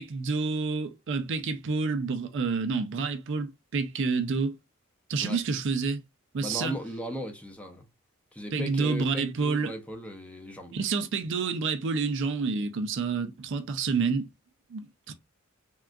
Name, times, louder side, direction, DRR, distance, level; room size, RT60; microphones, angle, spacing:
voice 1, 0.0-4.6 5.1-6.0 6.3-6.7 8.5-9.7 10.7-14.3 14.7-15.1, right 4 dB, 60° right, 0.4 m, -29 dB
voice 2, 6.4-7.8 8.3-10.7, equal, 5° left, 0.5 m, -37 dB
3.6 x 2.3 x 2.2 m
head